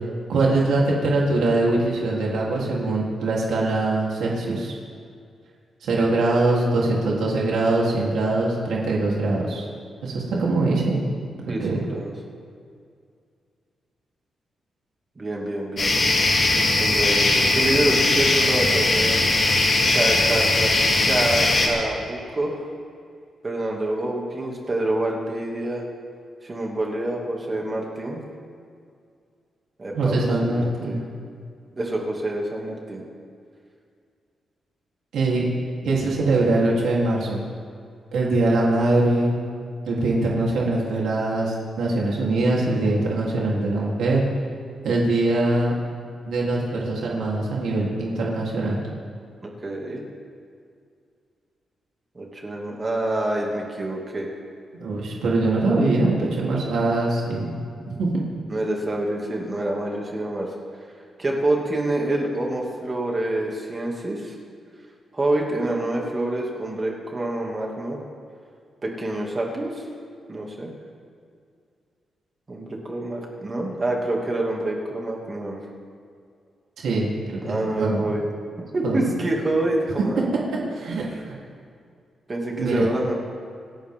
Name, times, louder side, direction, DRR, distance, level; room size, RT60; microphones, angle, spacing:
voice 1, 0.3-4.7 5.8-9.7 10.0-11.0 11.6-11.8 29.9-31.0 35.1-35.4 35.8-37.4 38.1-39.4 39.9-44.3 44.8-45.7 46.3-48.8 54.7-57.5 58.0-58.2 76.8-78.1 78.8-79.1 80.7-81.4 82.6-82.9, right 2 dB, 80° right, -4 dB, 3.5 m, -22 dB
voice 2, 11.5-12.1 15.2-16.0 16.8-19.3 19.9-22.5 23.4-25.8 26.4-28.2 29.8-31.0 31.7-33.0 49.4-50.0 52.1-54.3 58.5-60.5 61.2-64.4 65.1-68.0 68.8-69.8 70.3-70.7 72.5-75.6 77.4-78.2 78.7-80.3 82.3-83.1, right 1 dB, 20° right, -1 dB, 2.5 m, -27 dB
sound 1, 15.8-21.7, left 2 dB, 35° left, 3.3 m, -20 dB
28.0 x 13.5 x 3.8 m, 2.3 s
wide cardioid pair, 175°, 0 cm